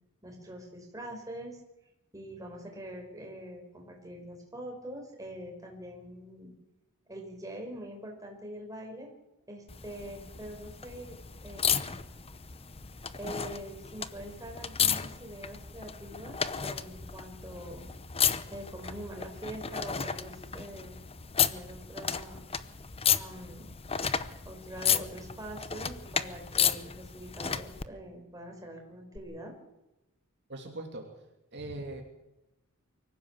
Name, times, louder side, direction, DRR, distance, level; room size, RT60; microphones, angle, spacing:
voice 1, 0.2-1.6 2.1-6.5 7.1-9.1 9.5-11.9 13.1-17.9 18.5-21.0 21.4-22.5 23.1-23.7 24.4-29.5 31.6-31.7, right 1 dB, 15° right, 1 dB, 4.9 m, -44 dB
sound 1, 9.7-27.9 29.2-29.3, left 7 dB, 25° left, 0.8 m, -33 dB
voice 2, 30.5-31.1 31.5-32.0, right 2 dB, 50° right, 1 dB, 3.0 m, -40 dB
24.0 x 15.5 x 7.4 m, 0.93 s
head